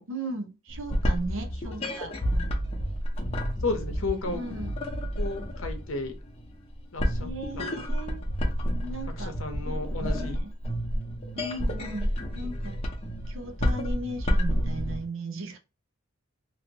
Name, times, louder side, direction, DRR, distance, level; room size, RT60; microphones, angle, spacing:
voice 1, 0.1-2.2 4.3-4.7 7.2-8.2 8.8-9.3 10.0-10.5 11.3-12.1 12.3-12.7 13.3-15.6, right 1 dB, 60° right, 0.8 m, -36 dB
sound 1, 0.7-15.0, equal, 25° left, 0.8 m, -30 dB
voice 2, 3.6-4.4 5.2-6.2 6.9-7.3 7.6-7.7 9.2-10.4, left 3 dB, 60° left, 0.9 m, -33 dB
3.0 x 2.9 x 2.8 m
head